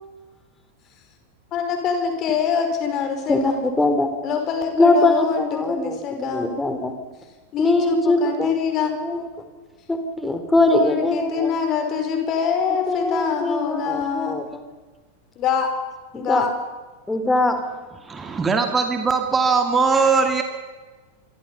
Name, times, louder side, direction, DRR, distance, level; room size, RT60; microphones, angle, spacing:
voice 1, 1.5-3.5 4.2-6.5 7.5-8.9 10.7-14.4 15.4-15.7 16.1-16.5, left 7 dB, 35° left, 5 dB, 5.3 m, -25 dB
voice 2, 3.3-4.1 4.7-6.9 7.6-9.3 9.9-11.5 12.9-14.6 16.1-16.5 17.1-17.6, left 2 dB, 10° left, 8 dB, 3.4 m, -21 dB
voice 3, 18.1-20.4, right 4 dB, 15° right, 5 dB, 2.2 m, -20 dB
27.0 x 24.0 x 5.6 m, 1.3 s
figure-of-eight pair, 90°, 0 cm